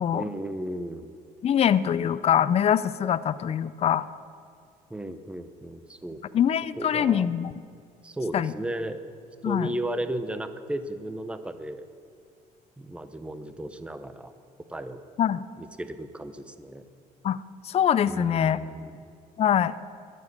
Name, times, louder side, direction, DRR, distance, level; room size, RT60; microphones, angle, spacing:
voice 1, 0.1-1.1 4.9-6.4 6.8-7.3 8.0-9.0 9.4-11.8 12.8-14.3 14.7-15.0 15.6-16.8 18.1-19.0, right 1 dB, 5° right, 10 dB, 0.7 m, -35 dB
voice 2, 1.4-4.1 6.3-7.5 8.3-8.5 9.4-9.7 15.2-15.5 17.2-17.4 17.6-18.6 19.4-19.7, left 9 dB, 35° left, 16 dB, 0.4 m, -23 dB
12.5 x 7.4 x 9.8 m, 2.3 s
cardioid pair, 110°, 17 cm